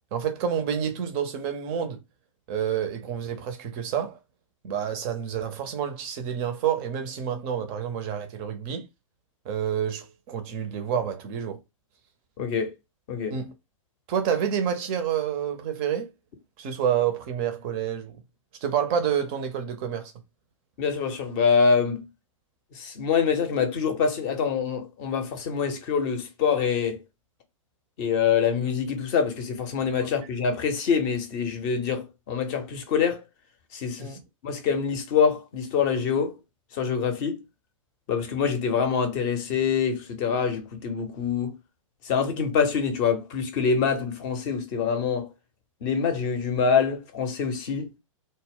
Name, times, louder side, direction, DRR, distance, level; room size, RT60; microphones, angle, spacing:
voice 1, 0.1-2.0 2.5-4.2 4.6-8.9 9.5-11.6 13.3-13.5 14.1-16.1 16.6-18.2 18.6-20.1 34.0-34.2, right 8 dB, 30° right, 0.4 m, -28 dB
voice 2, 12.4-12.7 13.1-13.4 20.8-22.1 22.7-27.0 28.0-33.2 33.7-34.1 34.4-36.4 36.7-37.4 38.1-41.5 42.0-45.3 45.8-47.9, left 6 dB, 35° left, 0.6 m, -25 dB
2.0 x 2.0 x 3.4 m
figure-of-eight pair, 105°, 17 cm